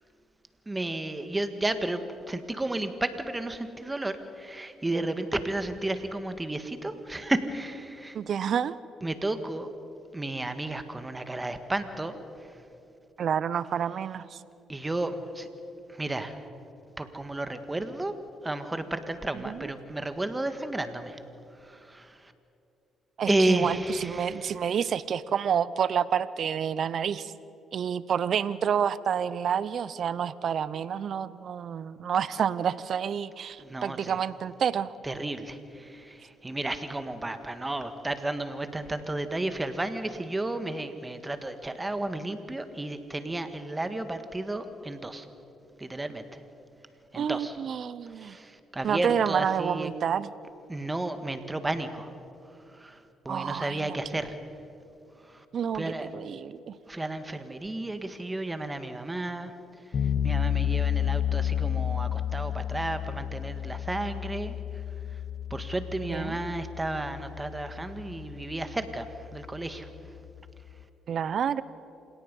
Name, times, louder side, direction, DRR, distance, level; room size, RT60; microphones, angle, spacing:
voice 1, 0.7-8.2 9.0-9.7 10.1-12.1 14.7-15.5 15.9-16.4 17.0-18.1 18.4-21.2 21.6-22.1 23.3-24.5 33.6-34.2 35.0-45.3 45.8-46.4 47.1-47.5 48.2-49.9 50.7-52.1 52.8-53.0 53.2-54.3 55.3-55.4 55.7-56.1 56.9-59.5 60.2-64.6 65.5-69.9, right 2 dB, 20° right, 9 dB, 1.7 m, -32 dB
voice 2, 8.1-8.8 13.2-14.4 19.3-19.7 23.2-27.3 27.7-34.9 47.1-48.4 48.8-50.3 53.3-54.2 55.5-56.7 66.0-66.4 71.1-71.6, right 8 dB, 60° right, 18 dB, 0.7 m, -29 dB
sound 1, 59.9-70.8, left 9 dB, 55° left, 1.2 m, -32 dB
27.5 x 17.5 x 5.5 m, 2.8 s
supercardioid pair, 65°, 0 cm